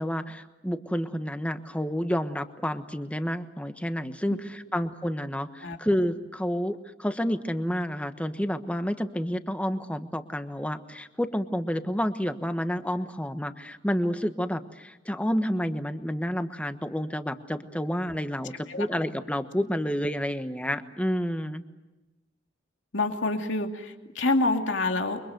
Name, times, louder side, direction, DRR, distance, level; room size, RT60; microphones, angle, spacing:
voice 1, 0.0-21.6, equal, 5° left, 8 dB, 1.3 m, -29 dB
voice 2, 22.9-25.2, left 2 dB, 80° left, 4 dB, 2.5 m, -27 dB
29.5 x 24.0 x 7.9 m, 1.0 s
head